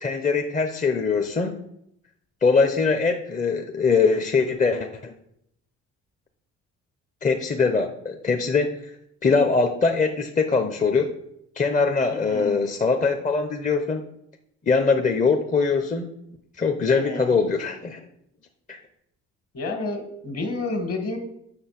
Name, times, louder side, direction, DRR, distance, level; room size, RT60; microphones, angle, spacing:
voice 1, 0.0-1.6 2.4-5.1 7.2-8.9 9.2-11.1 11.6-14.0 14.7-16.1 16.6-18.0 18.7-18.8, left 4 dB, 25° left, 5 dB, 0.8 m, -22 dB
voice 2, 12.1-12.6 16.9-17.3 19.5-21.2, left 2 dB, 50° left, 6 dB, 2.0 m, -30 dB
7.8 x 6.1 x 5.9 m, 0.76 s
cardioid pair, 90°, 30 cm